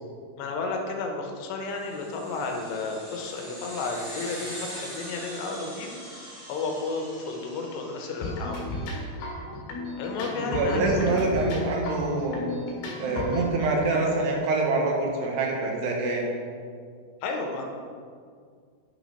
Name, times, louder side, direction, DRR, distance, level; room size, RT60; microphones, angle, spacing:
voice 1, 0.4-8.7 10.0-11.3 17.2-17.6, left 3 dB, 85° left, 2 dB, 3.2 m, -32 dB
sound 1, 1.7-8.6, equal, 45° right, 0.9 m, -42 dB
sound 2, 8.2-13.5, left 1 dB, 65° left, 3.5 m, -34 dB
voice 2, 10.3-12.5 13.0-16.3, right 2 dB, 75° right, 0 dB, 3.4 m, -25 dB
9.8 x 6.2 x 5.6 m, 2.1 s
omnidirectional pair, 4.9 m